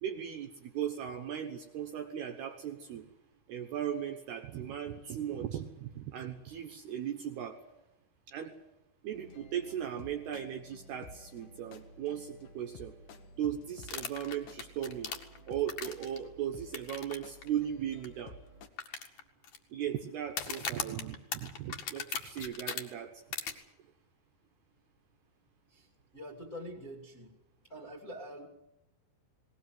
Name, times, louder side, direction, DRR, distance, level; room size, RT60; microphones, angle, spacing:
voice 1, 0.0-3.1 3.5-7.6 8.3-8.5 9.0-12.9 13.4-15.1 15.5-18.4 19.7-23.2, right 10 dB, 70° right, 4 dB, 2.6 m, -37 dB
sound 1, 9.1-18.7, left 2 dB, 70° left, 2.0 m, -53 dB
sound 2, 13.8-16.2 16.7-17.1 17.4-17.5 18.0-18.1 18.8-19.6 20.3-22.8 23.3-23.5, left 7 dB, 55° left, 2.3 m, -37 dB
voice 2, 25.7-27.4 27.6-28.5, equal, 25° left, 2 dB, 1.9 m, -45 dB
19.5 x 19.0 x 9.3 m, 0.92 s
omnidirectional pair, 6.0 m